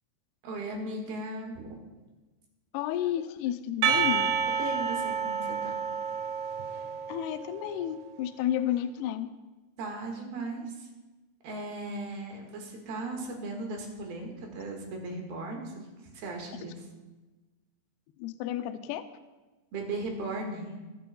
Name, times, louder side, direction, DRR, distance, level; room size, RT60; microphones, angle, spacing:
voice 1, 0.4-1.8 4.6-5.7 9.8-10.9 11.4-15.7 16.1-16.8 19.7-20.7, right 2 dB, 60° right, 1 dB, 3.1 m, -37 dB
voice 2, 2.7-4.3 7.1-9.3 18.2-19.0, left 11 dB, 85° left, 9 dB, 2.3 m, -31 dB
Percussion, 3.8-7.7, right 7 dB, 85° right, 3.3 m, -29 dB
20.5 x 9.2 x 2.3 m, 1.2 s
omnidirectional pair, 5.3 m